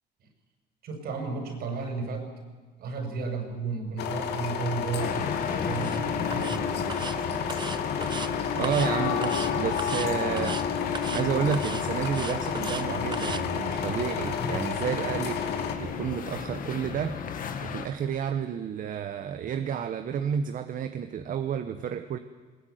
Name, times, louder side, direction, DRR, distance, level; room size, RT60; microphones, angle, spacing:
voice 1, 0.8-2.3 2.8-5.2 5.6-7.1, right 4 dB, 70° right, 5 dB, 6.1 m, -33 dB
sound 1, 4.0-15.8, left 6 dB, 80° left, 2.4 m, -32 dB
sound 2, 5.0-17.9, left 8 dB, 55° left, 2.0 m, -33 dB
sound 3, 5.7-6.0 6.3-6.6 6.9-7.2 7.5-8.3 8.6-8.9 9.2-9.5 9.8-10.1 10.4-10.6 10.9-11.2 11.5-12.8 13.1-13.4, right 5 dB, 25° right, 0.9 m, -37 dB
voice 2, 8.5-10.6 11.1-17.2 17.6-22.2, right 8 dB, 50° right, 8 dB, 1.1 m, -31 dB
20.0 x 20.0 x 9.4 m, 1.4 s
cardioid pair, 110°, 17 cm